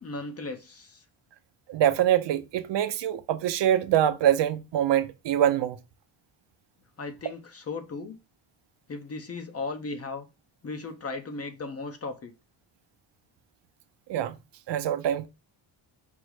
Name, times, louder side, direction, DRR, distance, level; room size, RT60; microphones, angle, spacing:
voice 1, 0.0-1.0 7.0-8.2 8.9-10.3 10.6-12.3, left 3 dB, 35° left, 0.8 m, -36 dB
voice 2, 1.7-5.8 14.1-14.4 14.7-15.3, right 11 dB, 70° right, 0.6 m, -24 dB
5.3 x 2.1 x 4.7 m
cardioid pair, 125°, 44 cm